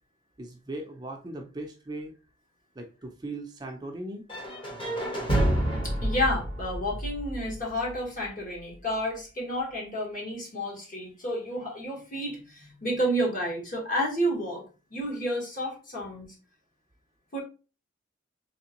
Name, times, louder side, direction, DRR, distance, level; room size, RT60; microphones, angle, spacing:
voice 1, 0.4-2.1 2.7-4.2, right 2 dB, 20° right, 2 dB, 0.5 m, -38 dB
sound 1, 4.3-8.2, right 1 dB, 25° left, 1.0 m, -29 dB
voice 2, 5.8-14.6 14.9-16.3 17.3-17.4, equal, 45° left, -2 dB, 1.5 m, -30 dB
3.5 x 3.2 x 2.9 m, 0.33 s
head